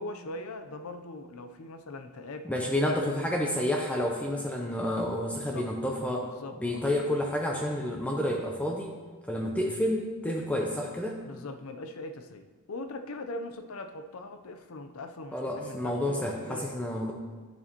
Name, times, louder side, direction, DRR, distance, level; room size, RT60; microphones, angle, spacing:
voice 1, 0.0-3.3 5.3-5.7 6.2-6.9 11.2-16.8, left 2 dB, 65° left, 7 dB, 0.6 m, -41 dB
voice 2, 2.4-6.3 6.6-8.9 9.3-11.2 15.3-17.1, left 1 dB, 5° left, 0 dB, 0.6 m, -30 dB
10.5 x 6.9 x 2.9 m, 1.4 s
head